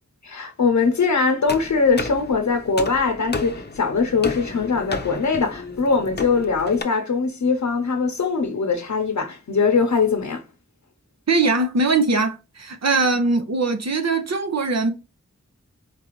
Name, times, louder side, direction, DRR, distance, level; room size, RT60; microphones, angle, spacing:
voice 1, 0.2-10.4, left 4 dB, 75° left, 0.7 m, -21 dB
sound 1, 1.5-6.8, left 3 dB, 35° left, 0.6 m, -33 dB
voice 2, 11.3-14.9, right 3 dB, 65° right, 0.7 m, -21 dB
4.5 x 2.5 x 3.0 m
wide cardioid pair, 70°, 29 cm